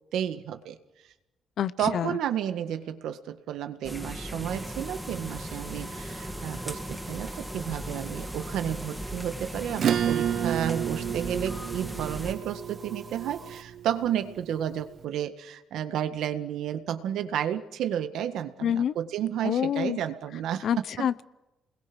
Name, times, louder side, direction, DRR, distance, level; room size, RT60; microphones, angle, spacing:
voice 1, 0.1-0.8 1.8-20.7 21.0-21.1, right 10 dB, 80° right, 9 dB, 1.7 m, -32 dB
voice 2, 1.6-2.1 18.6-18.9 19.4-20.0 20.6-21.2, left 9 dB, 65° left, 16 dB, 0.8 m, -27 dB
sound 1, 3.8-12.3, equal, 5° left, 2.7 m, -37 dB
sound 2, 4.4-13.6, right 4 dB, 35° right, 2.6 m, -48 dB
Acoustic guitar / Strum, 9.8-14.7, right 9 dB, 65° right, 0.7 m, -30 dB
29.0 x 21.5 x 6.2 m, 0.99 s
cardioid pair, 90°, 0 cm